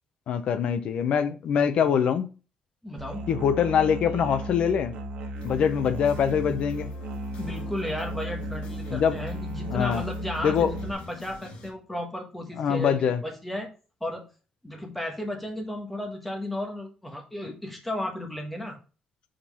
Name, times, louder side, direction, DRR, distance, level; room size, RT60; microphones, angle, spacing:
voice 1, 0.3-2.3 3.3-4.9 5.4-6.9 8.9-9.2 9.7-10.0 10.4-10.7 12.6-13.2, left 7 dB, 55° left, 0.7 m, -24 dB
voice 2, 2.8-3.3 7.4-13.7 14.0-14.2 14.6-18.8, left 1 dB, 5° left, 1.3 m, -34 dB
Musical instrument, 3.0-10.9, right 1 dB, 75° right, 1.2 m, -35 dB
sound 1, 5.3-11.7, left 4 dB, 70° left, 1.8 m, -46 dB
5.1 x 4.5 x 5.5 m
cardioid pair, 175°, 2 cm